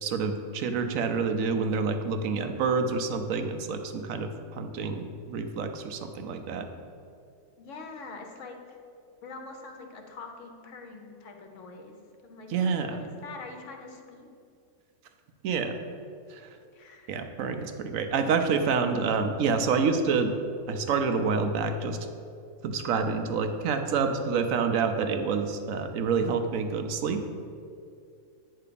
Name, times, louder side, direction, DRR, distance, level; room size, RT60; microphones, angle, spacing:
voice 1, 0.0-6.7 12.5-13.0 15.4-15.8 16.3-16.5 17.1-20.3 20.7-22.0 22.6-27.2, right 5 dB, 75° right, 6 dB, 1.0 m, -28 dB
voice 2, 7.6-8.6 9.2-12.0 12.2-14.3 16.7-17.1, left 3 dB, 65° left, 3 dB, 1.2 m, -44 dB
9.4 x 3.3 x 6.8 m, 2.4 s
omnidirectional pair, 1.4 m